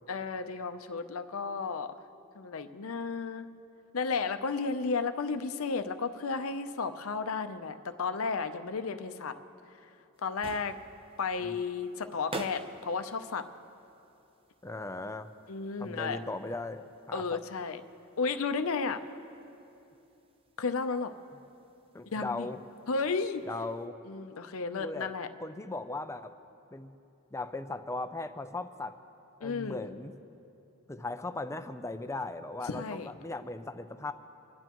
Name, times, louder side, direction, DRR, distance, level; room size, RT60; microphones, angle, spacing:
voice 1, 0.1-2.0 2.4-3.5 3.9-9.3 10.2-10.8 11.2-13.5 15.5-16.2 17.1-17.8 18.2-19.0 20.6-21.1 22.1-22.5 22.9-23.4 24.1-25.3 29.4-29.8 32.7-33.1, left 4 dB, 75° left, 9 dB, 0.7 m, -33 dB
sound 1, 10.1-23.9, right 2 dB, 25° right, 0.6 m, -50 dB
voice 2, 14.6-15.3 15.8-17.4 21.9-22.6 23.5-23.9 24.8-25.1 25.4-26.3 26.7-26.9 27.3-28.9 29.4-30.1 30.9-34.1, left 2 dB, 15° left, 8 dB, 0.5 m, -38 dB
26.5 x 11.0 x 3.0 m, 2.8 s
head